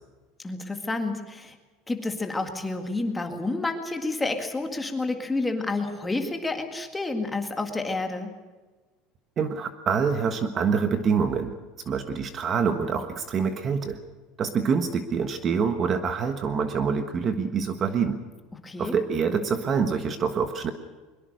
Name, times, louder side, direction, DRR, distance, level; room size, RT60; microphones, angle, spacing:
voice 1, 0.4-1.6 1.9-8.3 18.6-18.9, left 2 dB, 10° left, 5 dB, 2.1 m, -29 dB
voice 2, 9.4-11.5 11.8-14.0 14.4-18.2 18.8-20.7, right 6 dB, 25° right, 8 dB, 1.4 m, -26 dB
22.5 x 22.5 x 6.5 m, 1.3 s
cardioid pair, 170°, 0 cm